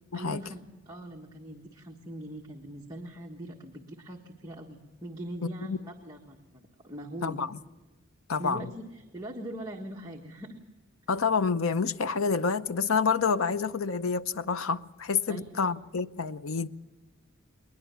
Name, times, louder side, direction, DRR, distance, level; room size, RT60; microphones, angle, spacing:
voice 1, 0.1-7.4 8.4-10.6 15.3-15.7, right 1 dB, 20° right, 1.5 m, -41 dB
voice 2, 7.2-7.6 8.3-8.7 11.1-16.7, left 5 dB, 90° left, 0.7 m, -28 dB
21.5 x 20.5 x 7.1 m
head